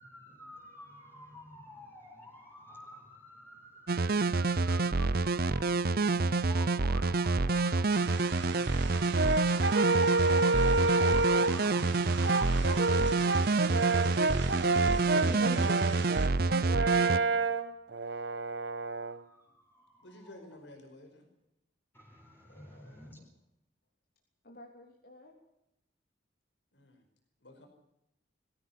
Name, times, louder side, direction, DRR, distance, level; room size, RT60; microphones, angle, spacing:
voice 1, 0.0-12.9 14.0-16.1 19.3-20.1 21.9-23.2, left 1 dB, 15° left, -1 dB, 4.5 m, -48 dB
sound 1, 3.9-17.2, right 3 dB, 55° right, 0.7 m, -28 dB
sound 2, 7.9-16.3, right 5 dB, 90° right, 2.7 m, -42 dB
Brass instrument, 9.1-11.7 12.2-19.2, right 3 dB, 75° right, 1.2 m, -29 dB
voice 2, 12.5-13.5 22.5-23.3 24.4-25.3, left 2 dB, 55° left, 0 dB, 3.4 m, -52 dB
voice 3, 20.0-21.3 26.7-27.0 27.4-27.7, left 1 dB, 85° left, 6 dB, 4.9 m, -52 dB
21.5 x 16.5 x 7.5 m, 0.84 s
head